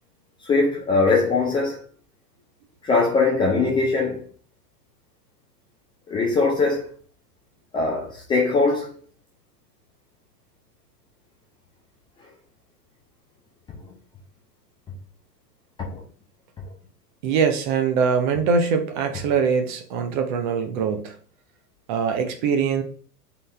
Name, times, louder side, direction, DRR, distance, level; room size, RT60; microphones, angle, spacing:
voice 1, 0.4-1.8 2.8-4.2 6.1-6.9 7.7-8.9 15.9-16.0, left 3 dB, 10° left, 0.6 m, -21 dB
voice 2, 17.2-21.2 21.9-22.8, right 6 dB, 30° right, 0.7 m, -22 dB
3.9 x 3.9 x 3.3 m
figure-of-eight pair, 100°, 48 cm